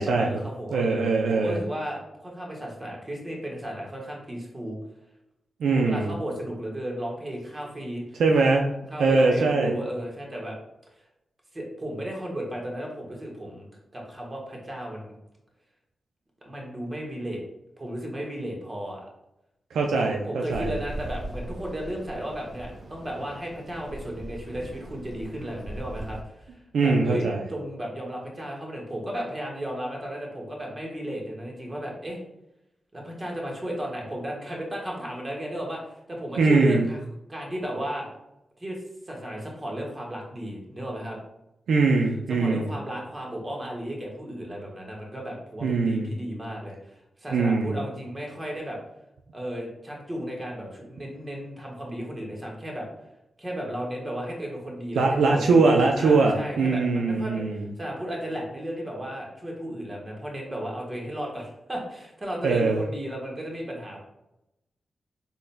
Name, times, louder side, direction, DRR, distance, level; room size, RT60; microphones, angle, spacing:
voice 1, 0.1-4.8 5.8-8.0 8.9-10.6 11.5-15.1 16.4-17.4 17.8-19.1 19.9-26.5 26.8-32.2 32.9-35.8 36.1-37.0 37.3-38.1 38.6-38.8 39.1-41.2 42.3-48.8 49.3-52.9 53.4-57.4 57.8-64.0, right 1 dB, 35° right, -1 dB, 1.4 m, -34 dB
voice 2, 0.7-1.6 5.6-6.1 8.2-8.7 9.0-9.8 19.7-20.7 26.7-27.4 36.4-36.8 41.7-42.7 45.6-46.1 47.3-47.7 55.0-57.7 62.4-62.8, right 3 dB, 85° right, 1 dB, 0.3 m, -22 dB
sound 1, 20.5-26.2, right 1 dB, 65° right, 0.9 m, -39 dB
3.9 x 3.8 x 2.2 m, 0.87 s
supercardioid pair, 45°, 0 cm